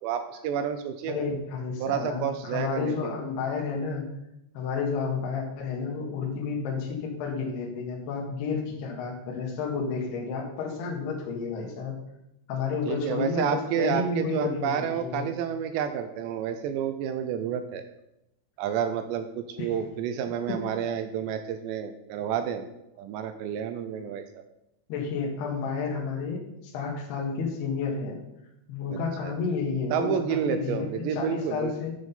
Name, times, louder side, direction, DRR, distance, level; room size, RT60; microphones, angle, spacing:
voice 1, 0.0-1.3 1.8-3.1 12.9-17.8 18.6-22.6 23.0-24.4 28.9-29.3 29.9-31.7, right 8 dB, 80° right, 9 dB, 2.6 m, -30 dB
voice 2, 1.1-4.1 4.5-12.0 12.5-15.2 19.6-19.7 20.5-20.6 24.9-28.2 28.7-30.1 30.5-31.9, left 5 dB, 65° left, -2 dB, 3.4 m, -31 dB
10.5 x 6.5 x 5.3 m, 0.85 s
omnidirectional pair, 5.5 m